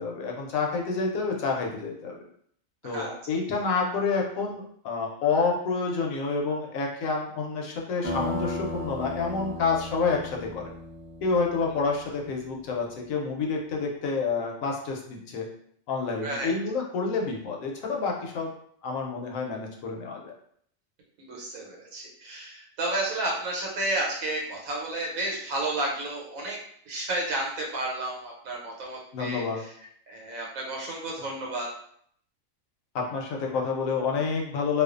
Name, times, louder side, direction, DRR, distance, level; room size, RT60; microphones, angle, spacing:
voice 1, 0.0-2.2 2.8-10.7 11.2-15.5 15.9-18.5 18.8-20.3 29.1-29.6 32.9-34.8, left 4 dB, 80° left, 0 dB, 1.0 m, -28 dB
voice 2, 2.8-3.1 16.2-16.5 21.3-26.6 26.9-29.4 30.1-31.7, right 2 dB, 85° right, -2 dB, 1.2 m, -31 dB
sound 1, 8.0-12.3, left 1 dB, 15° right, 0.4 m, -36 dB
2.4 x 2.3 x 2.4 m, 0.65 s
omnidirectional pair, 1.4 m